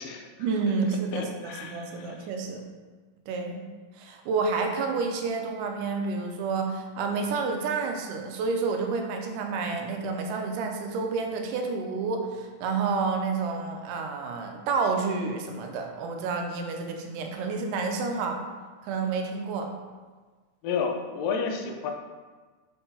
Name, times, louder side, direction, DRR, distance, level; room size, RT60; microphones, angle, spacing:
voice 1, 0.4-2.7 3.3-3.7 4.0-18.4 18.8-19.7, right 4 dB, 80° right, 3 dB, 2.2 m, -29 dB
voice 2, 1.1-2.2 20.6-21.9, left 5 dB, 90° left, 3 dB, 2.4 m, -31 dB
6.7 x 5.4 x 2.8 m, 1.4 s
omnidirectional pair, 3.7 m